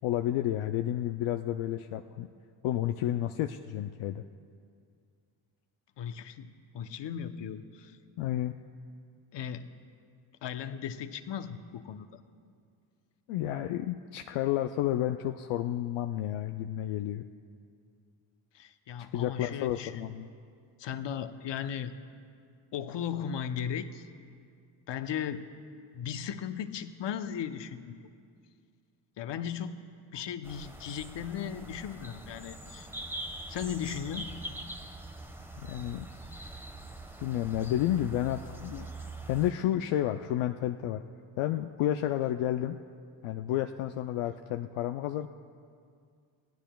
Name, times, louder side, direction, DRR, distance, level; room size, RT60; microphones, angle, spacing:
voice 1, 0.0-2.3 2.6-4.2 8.2-8.5 13.3-17.2 19.1-20.3 35.6-36.1 37.2-38.9 39.3-41.0 41.4-42.8 43.2-45.3, left 12 dB, 80° left, 6 dB, 0.6 m, -31 dB
voice 2, 6.0-8.0 9.3-9.7 10.4-12.2 18.5-20.1 20.8-21.9 22.7-24.1 24.9-25.5 25.9-28.0 29.2-29.8 30.1-32.9 33.5-34.4 36.4-36.7, left 8 dB, 60° left, 10 dB, 0.9 m, -37 dB
sound 1, 30.4-39.5, right 2 dB, 5° right, 1.2 m, -43 dB
24.5 x 16.0 x 2.3 m, 2.2 s
supercardioid pair, 60°, 49 cm